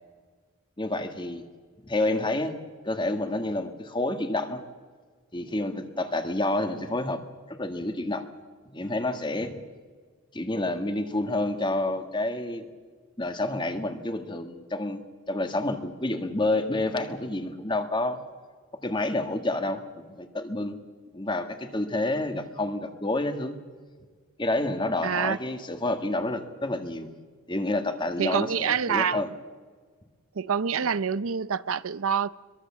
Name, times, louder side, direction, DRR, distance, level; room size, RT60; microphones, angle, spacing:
voice 1, 0.8-1.4 1.8-2.5 2.8-4.6 5.3-7.2 7.5-8.2 8.7-9.6 10.3-12.7 13.2-15.0 15.3-18.2 18.8-20.8 21.1-23.5 24.4-27.1 27.5-29.3, left 2 dB, 20° left, 1.7 m, -29 dB
voice 2, 25.0-25.4 28.2-29.2 30.4-32.3, right 7 dB, 80° right, 0.6 m, -26 dB
25.0 x 22.5 x 7.4 m
head